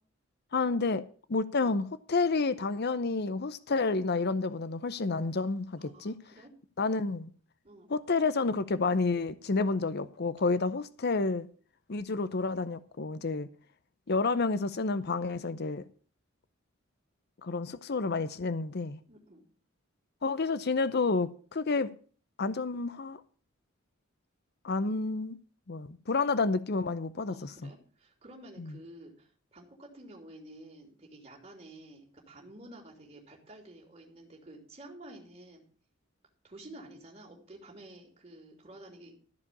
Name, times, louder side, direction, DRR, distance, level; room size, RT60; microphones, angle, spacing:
voice 1, 0.5-1.0 1.3-6.1 6.8-7.3 7.9-11.5 11.9-13.5 14.1-15.8 17.4-19.0 20.2-21.9 22.4-23.2 24.6-25.4 25.7-27.7 28.6-28.7, left 3 dB, 50° left, 0.7 m, -30 dB
voice 2, 5.8-6.5 7.6-7.9 19.1-19.4 27.3-35.6 36.4-39.1, right 1 dB, 30° right, 2.9 m, -51 dB
13.5 x 5.0 x 8.4 m
head